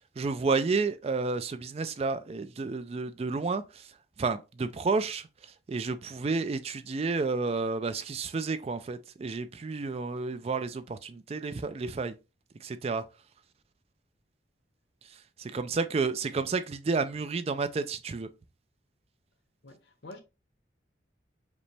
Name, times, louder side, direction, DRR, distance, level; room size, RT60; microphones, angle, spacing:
voice 1, 0.2-12.2 12.6-13.0 15.1-18.3, right 4 dB, 35° right, 0.3 m, -31 dB
voice 2, 19.6-20.2, left 2 dB, 70° left, 0.9 m, -47 dB
5.1 x 2.1 x 3.2 m
head